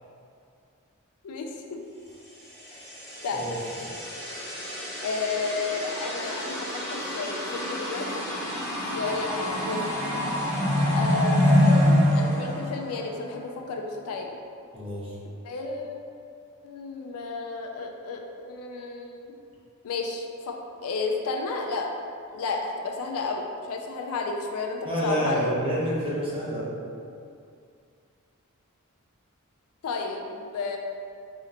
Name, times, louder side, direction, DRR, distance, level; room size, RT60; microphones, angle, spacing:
voice 1, 1.2-1.8 2.7-2.8 3.2-3.5 5.0-8.2 8.9-9.8 10.9-14.4 15.4-16.0 16.6-19.3 19.8-20.6 20.8-21.9 22.3-25.5 29.8-30.8, left 4 dB, 75° left, 2 dB, 0.4 m, -32 dB
sound 1, 2.6-13.3, left 1 dB, 15° left, 0.6 m, -26 dB
voice 2, 14.7-15.1 24.8-26.7, equal, 25° right, -8 dB, 0.8 m, -28 dB
4.2 x 2.8 x 2.5 m, 2.4 s
head